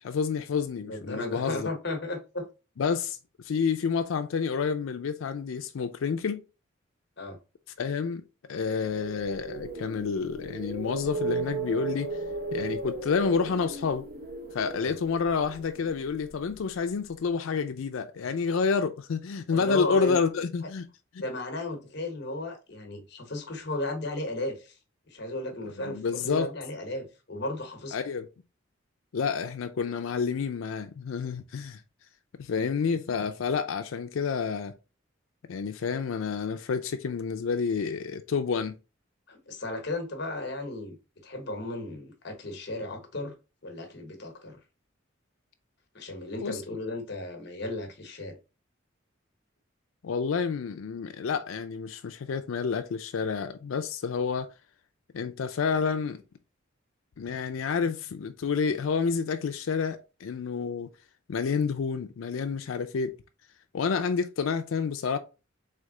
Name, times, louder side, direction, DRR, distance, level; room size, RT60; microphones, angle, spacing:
voice 1, 0.0-1.7 2.8-3.2 3.4-6.4 7.8-8.2 8.5-12.2 12.5-14.0 14.5-20.8 25.8-26.5 27.9-28.2 29.1-31.8 32.4-34.7 35.5-38.8 46.4-46.6 50.0-54.5 55.1-56.2 57.2-60.9 61.3-63.2 63.7-65.2, left 5 dB, 90° left, 0.4 m, -29 dB
voice 2, 0.8-2.5 7.2-7.4 14.8-15.0 19.5-20.2 21.2-24.8 25.1-28.0 39.3-41.0 41.2-43.3 43.6-44.6 45.9-48.4, left 2 dB, 55° left, 1.0 m, -35 dB
sound 1, 8.7-16.8, right 3 dB, 50° right, 0.7 m, -36 dB
3.4 x 3.3 x 3.7 m
head